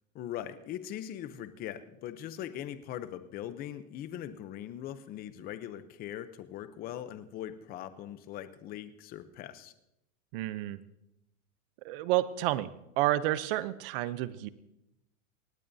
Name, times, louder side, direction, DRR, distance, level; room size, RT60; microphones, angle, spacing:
voice 1, 0.1-9.7, left 11 dB, 20° left, 12 dB, 0.7 m, -41 dB
voice 2, 10.3-10.8 11.8-12.7 13.0-14.5, right 15 dB, 40° right, 15 dB, 0.7 m, -30 dB
18.0 x 17.5 x 2.7 m, 0.86 s
supercardioid pair, 145°, 42 cm